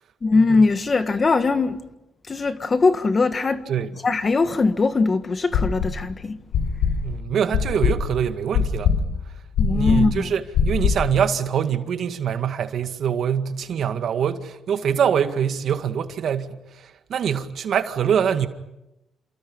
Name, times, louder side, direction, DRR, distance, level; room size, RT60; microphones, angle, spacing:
voice 1, 0.2-1.8 2.3-3.6 4.0-6.4 9.6-10.3, left 3 dB, 35° left, 1.7 m, -20 dB
sound 1, 5.5-6.1 6.5-11.2, left 6 dB, 85° left, 5.5 m, -22 dB
voice 2, 7.0-9.0 9.7-18.5, right 8 dB, 65° right, 2.0 m, -24 dB
29.0 x 27.5 x 5.6 m
cardioid pair, 90°, 0 cm